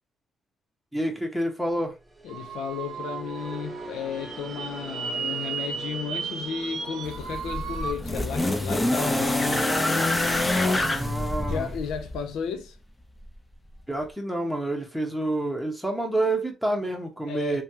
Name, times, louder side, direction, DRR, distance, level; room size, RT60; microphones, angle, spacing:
voice 1, 0.9-1.9 10.7-11.7 13.9-17.6, right 1 dB, ahead, 0.9 m, -28 dB
sound 1, 2.0-11.0, right 2 dB, 20° right, 0.6 m, -43 dB
voice 2, 2.2-9.7 11.5-12.8 17.3-17.6, left 7 dB, 85° left, 0.5 m, -34 dB
sound 2, 2.3-7.9, right 6 dB, 85° right, 0.6 m, -35 dB
sound 3, 7.0-12.3 13.3-13.4, left 2 dB, 15° left, 0.6 m, -26 dB
3.1 x 2.3 x 2.7 m
cardioid pair, 90°, 0 cm